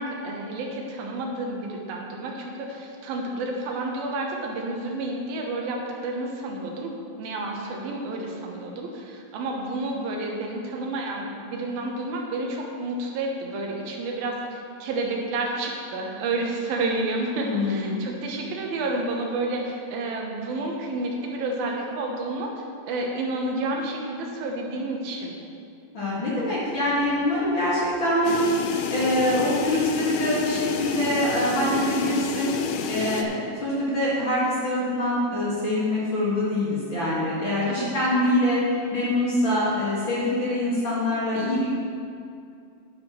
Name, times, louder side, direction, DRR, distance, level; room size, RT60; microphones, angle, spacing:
voice 1, 0.0-6.9 7.2-25.3 37.6-37.9, right 2 dB, 80° right, 0 dB, 2.8 m, -30 dB
voice 2, 17.4-18.0 25.9-28.5 28.9-32.5 32.9-38.6 38.9-41.6, left 1 dB, 40° left, -9 dB, 2.1 m, -24 dB
sound 1, 28.2-33.2, left 6 dB, 80° left, 1.9 m, -29 dB
10.5 x 10.0 x 3.1 m, 2.5 s
omnidirectional pair, 4.2 m